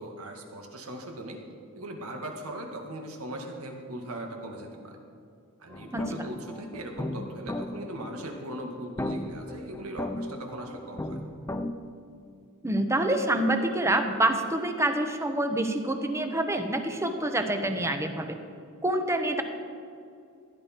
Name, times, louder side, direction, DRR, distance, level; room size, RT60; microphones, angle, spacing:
voice 1, 0.0-1.4 1.7-5.0 5.6-11.2, right 1 dB, 80° right, 2 dB, 1.9 m, -39 dB
sound 1, 5.7-11.7, left 1 dB, 15° left, 0.5 m, -36 dB
voice 2, 12.6-18.4 18.8-19.4, right 1 dB, 15° right, 6 dB, 0.9 m, -26 dB
15.5 x 10.5 x 4.5 m, 2.4 s
head